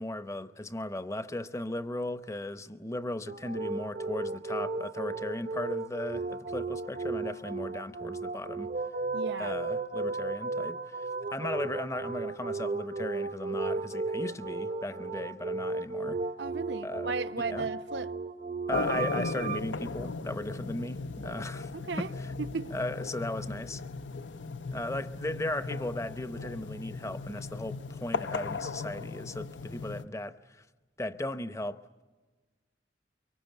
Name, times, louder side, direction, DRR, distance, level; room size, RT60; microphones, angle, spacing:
voice 1, 0.0-8.7 9.4-16.2 16.8-17.1 17.4-17.7 18.7-21.7 22.0-22.3 22.7-23.8 24.7-30.6 31.0-32.0, left 1 dB, 15° left, 0.8 m, -37 dB
sound 1, 3.3-19.6, right 3 dB, 45° right, 0.8 m, -35 dB
voice 2, 9.1-9.5 16.4-18.1 21.7-22.1 22.4-22.7, right 4 dB, 70° right, 0.8 m, -35 dB
sound 2, 18.7-30.0, left 4 dB, 80° left, 0.8 m, -37 dB
24.0 x 24.0 x 9.1 m
head